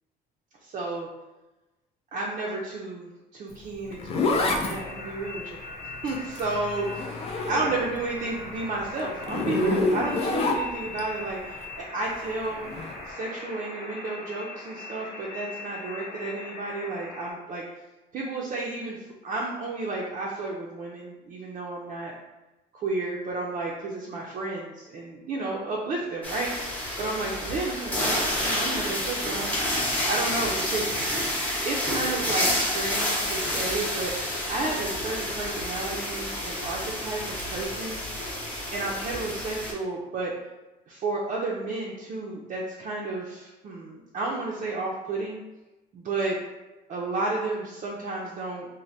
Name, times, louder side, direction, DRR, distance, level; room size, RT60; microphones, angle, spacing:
voice 1, 0.6-1.1 2.1-5.6 6.0-7.2 7.5-12.6 13.1-17.6 18.1-22.1 22.7-29.6 30.1-31.1 31.6-38.0 38.5-40.3 40.9-45.4 45.9-46.4 46.9-48.7, right 2 dB, 45° right, -4 dB, 0.5 m, -32 dB
Zipper (clothing), 3.5-8.0 8.3-11.0 12.6-12.9, left 3 dB, 35° left, 0.4 m, -28 dB
sound 1, 4.7-17.3, left 2 dB, 65° left, 0.7 m, -41 dB
sound 2, 26.2-39.7, left 1 dB, 10° left, 0.8 m, -29 dB
3.2 x 2.1 x 2.6 m, 1.1 s
cardioid pair, 110°, 17 cm